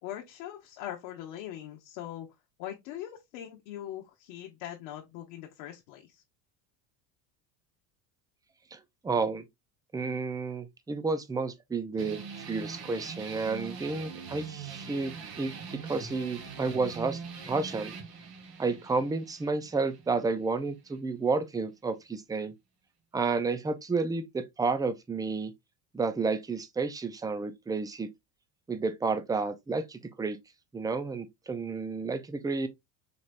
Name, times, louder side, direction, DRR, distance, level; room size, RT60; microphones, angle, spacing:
voice 1, 0.0-2.3 2.6-6.2, left 12 dB, 70° left, 1.0 m, -41 dB
voice 2, 8.7-9.4 9.9-17.2 17.5-17.9 18.6-22.5 23.1-25.5 25.9-28.1 28.7-30.4 30.7-32.7, right 4 dB, 10° right, 0.5 m, -31 dB
sound 1, 12.0-21.0, right 5 dB, 45° right, 1.4 m, -43 dB
4.2 x 3.1 x 2.5 m
supercardioid pair, 90°, 49 cm